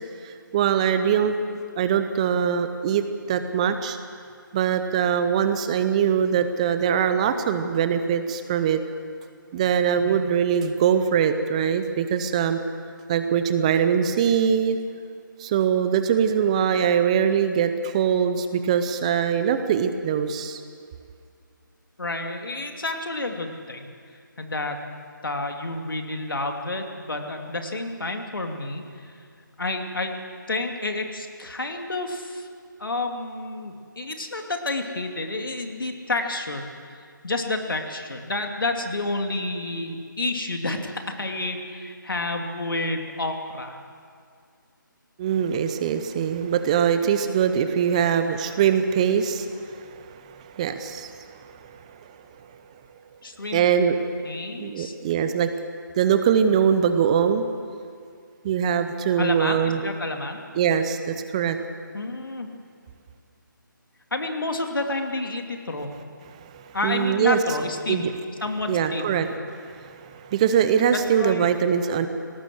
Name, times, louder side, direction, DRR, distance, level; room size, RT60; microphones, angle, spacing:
voice 1, 0.2-1.4 1.8-4.0 4.5-8.8 9.5-12.6 13.1-14.8 15.4-20.6 45.2-51.6 53.5-54.0 54.6-55.5 56.0-57.5 58.4-59.8 60.6-61.6 66.4-67.4 67.9-68.1 68.7-69.3 69.6-72.1, right 8 dB, 20° right, 9 dB, 0.7 m, -22 dB
voice 2, 22.0-23.9 24.4-24.8 25.2-29.2 29.6-30.1 30.5-32.5 32.8-43.8 53.2-53.7 54.2-54.9 59.2-60.4 61.9-62.5 64.1-65.9 66.7-68.1 68.4-69.2 71.2-71.5, left 2 dB, 80° left, 4 dB, 2.7 m, -30 dB
19.0 x 18.0 x 7.8 m, 2.2 s
figure-of-eight pair, 160°, 11 cm